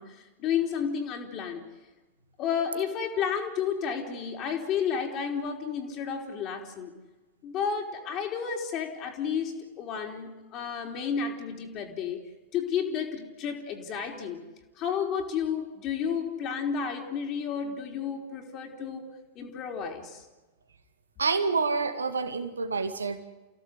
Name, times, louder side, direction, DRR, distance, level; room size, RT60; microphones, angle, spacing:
voice 1, 0.0-1.7 2.4-6.9 7.4-14.5 14.8-20.2, left 7 dB, 35° left, 1 dB, 3.8 m, -32 dB
voice 2, 21.2-23.2, right 4 dB, 75° right, 10 dB, 2.1 m, -28 dB
29.5 x 16.5 x 8.2 m, 1.2 s
figure-of-eight pair, 90°, 0 cm